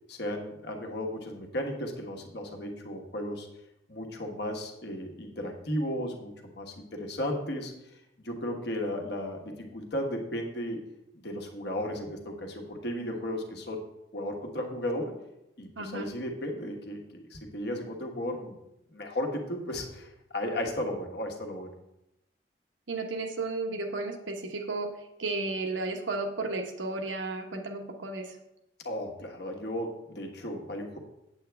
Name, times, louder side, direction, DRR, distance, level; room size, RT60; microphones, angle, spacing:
voice 1, 0.1-3.5 3.9-7.7 8.2-10.8 11.1-13.8 14.1-15.1 15.6-17.0 17.3-18.5 18.9-21.7 28.8-31.0, left 1 dB, 60° left, 2 dB, 1.3 m, -35 dB
voice 2, 15.8-16.1 22.9-24.9 25.2-28.4, right 3 dB, 85° right, 4 dB, 1.1 m, -33 dB
8.3 x 7.9 x 3.4 m, 0.87 s
head